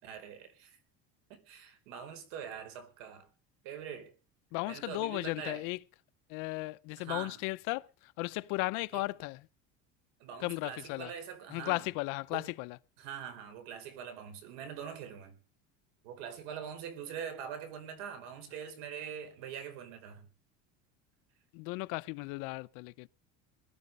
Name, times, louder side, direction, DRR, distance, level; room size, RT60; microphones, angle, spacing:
voice 1, 0.0-0.8 1.3-3.3 3.6-4.1 4.6-5.6 7.0-7.4 8.9-9.0 10.2-11.9 12.3-12.5 13.0-15.4 16.0-20.3, right 8 dB, 70° right, 4.8 m, -43 dB
voice 2, 4.5-5.8 6.3-9.4 10.4-11.1 11.5-12.8 21.5-23.1, left 23 dB, 65° left, 0.8 m, -36 dB
21.0 x 12.0 x 5.4 m
cardioid pair, 170°, 34 cm